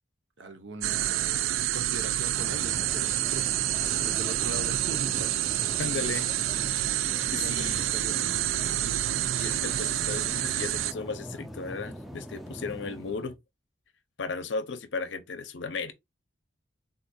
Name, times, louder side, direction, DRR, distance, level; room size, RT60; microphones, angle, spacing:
voice 1, 0.4-3.5 3.9-5.3 7.3-8.2, right 2 dB, 65° right, 0.7 m, -40 dB
sound 1, 0.8-10.9, right 12 dB, 85° right, 0.3 m, -28 dB
sound 2, 2.4-13.4, equal, ahead, 0.3 m, -42 dB
voice 2, 5.8-6.3 6.8-7.9 9.4-13.4 14.2-15.9, left 4 dB, 65° left, 0.6 m, -35 dB
3.8 x 2.3 x 2.6 m
head